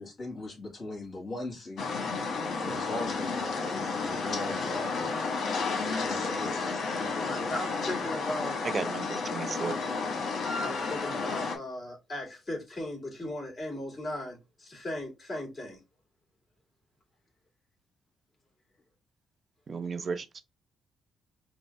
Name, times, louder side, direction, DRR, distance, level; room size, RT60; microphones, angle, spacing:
voice 1, 0.0-2.0 2.6-7.6, left 1 dB, 45° left, 2.0 m, -40 dB
sound 1, 1.8-11.6, left 4 dB, 65° left, 1.1 m, -32 dB
voice 2, 5.1-5.4 6.8-6.9 7.2-8.6 10.6-15.8, left 1 dB, 30° left, 2.2 m, -37 dB
voice 3, 8.7-9.8 19.7-20.4, right 5 dB, 40° right, 0.6 m, -34 dB
5.1 x 2.0 x 3.4 m
cardioid pair, 90°, 0 cm